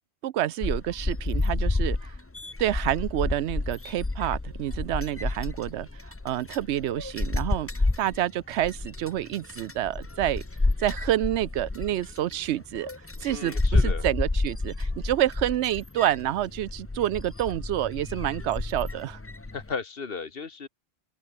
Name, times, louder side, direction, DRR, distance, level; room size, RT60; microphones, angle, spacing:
voice 1, 0.2-2.1 2.6-5.9 6.2-7.7 8.0-10.4 10.8-12.9 13.2-19.2, right 12 dB, 80° right, 0.9 m, -28 dB
sound 1, 0.6-19.7, left 2 dB, 15° left, 0.6 m, -30 dB
voice 2, 13.3-14.0 19.5-20.7, left 5 dB, 60° left, 1.6 m, -35 dB
open air
omnidirectional pair, 1.1 m